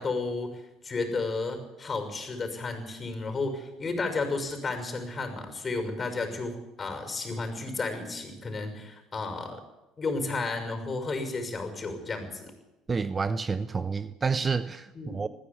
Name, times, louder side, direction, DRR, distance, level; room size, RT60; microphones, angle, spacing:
voice 1, 0.0-9.6 10.0-12.5 14.9-15.2, left 3 dB, 30° left, 6.2 m, -32 dB
voice 2, 12.9-15.3, right 5 dB, 30° right, 0.9 m, -29 dB
20.5 x 15.0 x 8.8 m
hypercardioid pair, 70°, 0 cm